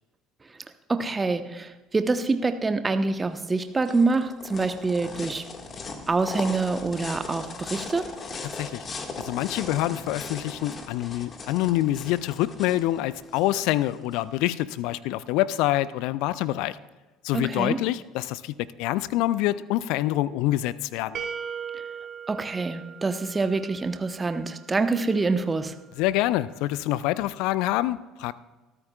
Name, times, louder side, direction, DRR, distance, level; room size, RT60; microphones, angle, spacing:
voice 1, 0.9-5.4 6.1-8.1 17.3-17.8 22.3-25.7, right 3 dB, 20° right, 9 dB, 1.0 m, -26 dB
sound 1, 3.4-14.2, left 3 dB, 30° left, 1.8 m, -38 dB
voice 2, 9.2-16.8 17.2-21.2 26.0-28.3, left 15 dB, 60° left, 19 dB, 0.4 m, -26 dB
sound 2, 21.1-24.0, right 7 dB, 45° right, 1.4 m, -37 dB
22.5 x 13.5 x 2.4 m, 1.2 s
figure-of-eight pair, 60°, 0 cm